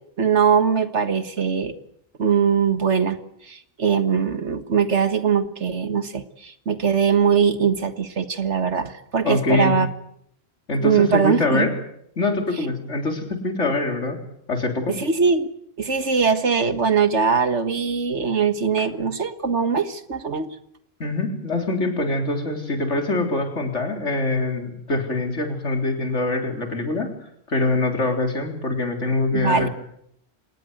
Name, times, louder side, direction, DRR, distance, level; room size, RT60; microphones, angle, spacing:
voice 1, 0.2-1.7 2.2-3.2 3.5-9.9 10.8-11.7 14.9-15.5 15.8-20.5 29.3-29.7, right 6 dB, 75° right, 10 dB, 1.9 m, -21 dB
voice 2, 9.2-9.7 10.7-11.7 12.2-14.2 14.5-15.0 21.0-27.1 27.5-29.7, left 2 dB, 85° left, 4 dB, 4.2 m, -24 dB
26.0 x 19.0 x 8.0 m, 0.74 s
omnidirectional pair, 1.2 m